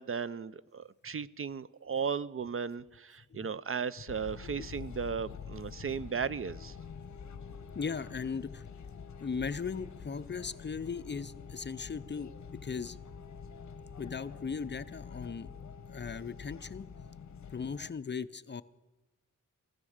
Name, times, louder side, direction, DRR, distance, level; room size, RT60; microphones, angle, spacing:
voice 1, 0.0-6.8, right 6 dB, 45° right, 0.4 m, -36 dB
sound 1, 4.1-17.9, left 6 dB, 60° left, 0.8 m, -46 dB
voice 2, 7.7-8.6 9.2-12.3 12.6-13.0 14.0-15.5 15.9-16.9 17.5-18.6, left 5 dB, 35° left, 0.5 m, -37 dB
15.5 x 13.5 x 6.4 m
wide cardioid pair, 120°, 32 cm